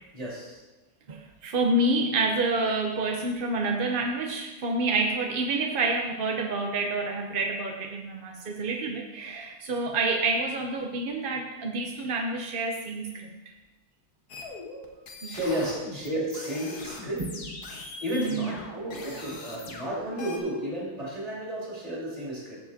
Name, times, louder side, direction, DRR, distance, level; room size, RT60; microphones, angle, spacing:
voice 1, 0.1-0.6 15.2-17.3 18.0-22.6, right 1 dB, 25° right, -5 dB, 2.6 m, -32 dB
voice 2, 1.1-13.3 15.2-15.4 18.1-18.5, right 2 dB, 45° right, 1 dB, 0.7 m, -28 dB
sound 1, 14.3-20.4, left 3 dB, 85° left, 1.8 m, -41 dB
14.5 x 7.5 x 2.7 m, 1.1 s
omnidirectional pair, 1.6 m